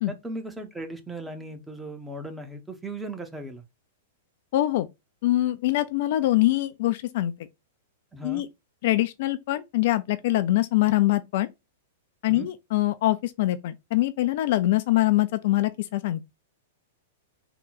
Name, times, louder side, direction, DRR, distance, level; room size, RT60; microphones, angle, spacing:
voice 1, 0.1-3.6 8.1-8.4 12.3-12.5, right 2 dB, 5° right, 0.7 m, -37 dB
voice 2, 4.5-4.9 5.2-7.3 8.2-8.5 8.8-11.5 12.2-16.2, left 16 dB, 55° left, 0.3 m, -24 dB
3.8 x 2.2 x 3.9 m
figure-of-eight pair, 100°, 0 cm